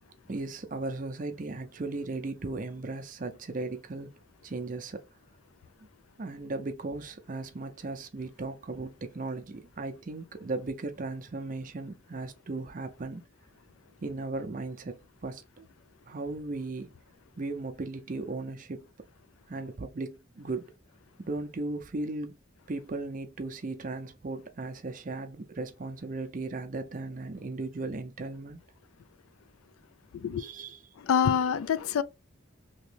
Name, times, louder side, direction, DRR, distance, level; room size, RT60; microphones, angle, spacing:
voice 1, 0.3-4.1 4.4-5.0 6.2-13.2 14.0-15.7 16.1-16.9 17.4-18.9 19.5-20.7 21.2-22.4 22.7-28.6 30.4-30.8, right 3 dB, 40° right, 0.5 m, -36 dB
voice 2, 30.1-30.5 31.0-32.0, left 7 dB, 90° left, 0.4 m, -26 dB
3.0 x 2.8 x 3.2 m
head